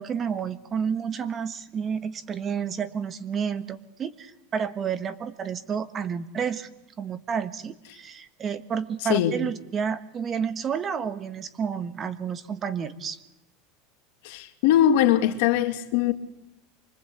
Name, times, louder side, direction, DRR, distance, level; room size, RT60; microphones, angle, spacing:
voice 1, 0.0-6.7 7.0-13.2, right 7 dB, 25° right, 1.4 m, -30 dB
voice 2, 14.2-16.1, left 11 dB, 70° left, 2.7 m, -21 dB
25.5 x 23.5 x 8.2 m
supercardioid pair, 145°, 0 cm